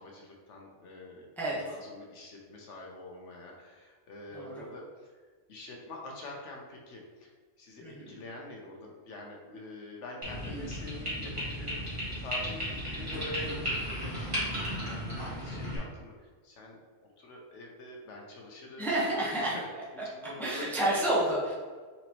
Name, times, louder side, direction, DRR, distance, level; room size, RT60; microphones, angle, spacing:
voice 1, 0.0-5.2 5.5-11.9 12.2-16.8 17.2-18.9 19.4-19.6 20.0-21.1, left 2 dB, 80° left, -1 dB, 1.2 m, -45 dB
voice 2, 4.3-4.6 7.8-8.2 10.5-10.6 13.0-13.1 18.8-19.6 20.4-21.5, right 1 dB, ahead, -7 dB, 1.0 m, -30 dB
sound 1, 10.2-15.8, equal, 25° right, 1.6 m, -35 dB
4.3 x 4.1 x 3.0 m, 1.5 s
omnidirectional pair, 1.2 m